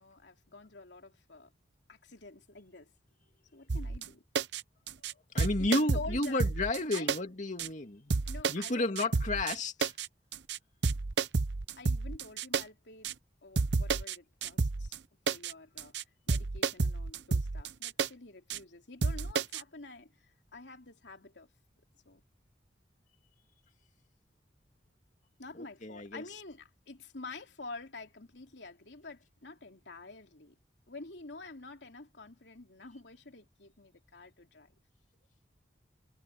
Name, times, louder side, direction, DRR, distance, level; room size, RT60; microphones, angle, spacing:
voice 1, 0.0-1.5 1.9-2.9 3.5-4.2 5.4-6.4 6.9-7.2 8.2-9.1 11.8-13.1 13.4-14.9 15.3-15.9 16.3-21.5 22.0-22.2 25.4-30.6 30.9-34.7, left 3 dB, 85° left, 3.0 m, -48 dB
sound 1, 3.7-4.1 4.3-4.6 4.9-5.1 5.4-7.2 7.6-7.7 8.1-8.7 9.0-9.5 9.8-10.1 10.3-10.6 10.8-12.6 13.0-13.1 13.6-14.1 14.4-15.0 15.3-15.5 15.8-16.0 16.3-18.1 18.5-18.6 19.0-19.6, right 4 dB, 75° right, 0.8 m, -30 dB
voice 2, 5.0-8.1 8.5-9.9 25.5-26.2, left 2 dB, 45° left, 2.5 m, -32 dB
head